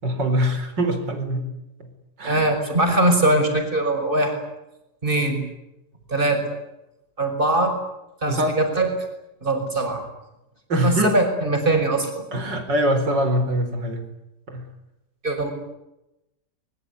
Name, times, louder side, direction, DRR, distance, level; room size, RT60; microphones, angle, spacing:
voice 1, 0.0-1.5 2.2-2.4 8.3-8.6 10.7-11.1 12.3-14.0 14.5-14.6, equal, 80° right, 7 dB, 4.9 m, -23 dB
voice 2, 2.2-4.4 5.0-5.4 6.1-6.6 7.2-7.7 8.2-8.9 9.4-10.0 10.8-12.3 15.2-15.5, right 2 dB, 30° right, 5 dB, 6.0 m, -21 dB
24.0 x 22.0 x 9.8 m, 0.92 s
omnidirectional pair, 1.9 m